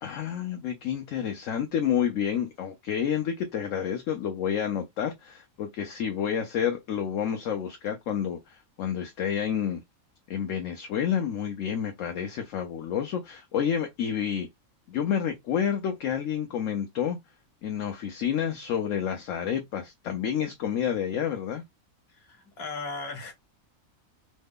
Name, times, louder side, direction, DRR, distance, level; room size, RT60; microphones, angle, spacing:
voice 1, 0.0-9.8 10.3-14.5 14.9-17.2 17.6-21.6, left 8 dB, 70° left, 0.9 m, -29 dB
voice 2, 22.1-23.3, left 3 dB, 50° left, 1.3 m, -37 dB
3.2 x 2.1 x 3.5 m
omnidirectional pair, 1.5 m